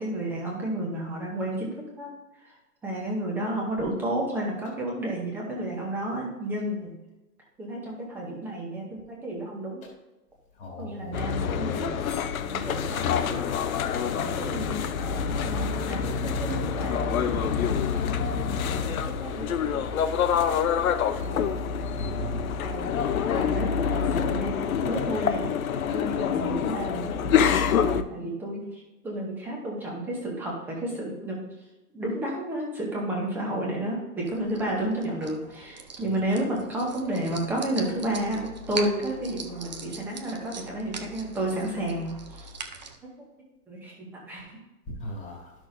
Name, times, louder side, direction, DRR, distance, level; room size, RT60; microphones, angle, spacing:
voice 1, 0.0-2.1 2.4-2.5 2.8-6.9 7.6-9.8 10.8-13.5 14.1-18.4 18.7-19.9 21.0-21.5 22.6-22.9 23.3-25.5 25.9-31.4 31.9-42.5 43.7-44.6, right 1 dB, 5° right, -3 dB, 0.7 m, -32 dB
voice 2, 10.6-11.2 15.2-15.3 21.9-22.5 44.9-45.5, equal, 15° left, -1 dB, 1.7 m, -37 dB
sound 1, 11.1-28.0, left 7 dB, 60° left, 0.7 m, -26 dB
sound 2, 34.2-43.0, right 4 dB, 30° right, 0.4 m, -41 dB
12.0 x 6.1 x 2.6 m, 1.0 s
hypercardioid pair, 155°, 48 cm